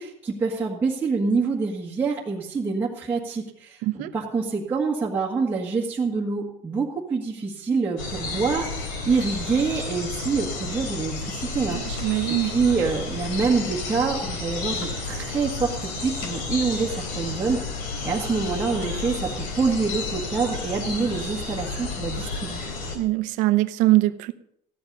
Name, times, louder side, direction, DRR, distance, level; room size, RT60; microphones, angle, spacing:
voice 1, 0.0-22.7, right 4 dB, 15° right, -4 dB, 1.6 m, -26 dB
sound 1, 8.0-23.0, left 3 dB, 85° left, 3.7 m, -31 dB
voice 2, 11.7-12.5 22.9-24.3, right 17 dB, 70° right, 11 dB, 0.9 m, -22 dB
15.0 x 11.0 x 5.4 m, 0.72 s
cardioid pair, 170°, 14 cm